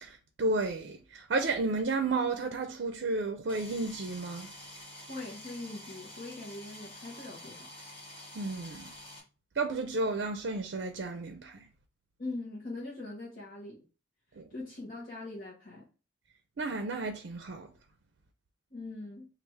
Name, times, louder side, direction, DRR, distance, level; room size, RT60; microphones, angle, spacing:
voice 1, 0.0-4.5 8.3-8.9 9.6-11.7 14.4-14.5 16.6-17.7, right 3 dB, 65° right, 0.5 m, -32 dB
sound 1, 3.5-9.2, left 1 dB, 25° left, 1.2 m, -48 dB
voice 2, 5.1-7.7 12.2-13.8 14.5-15.9 18.7-19.3, left 2 dB, 50° left, 1.0 m, -41 dB
3.3 x 2.5 x 4.4 m
head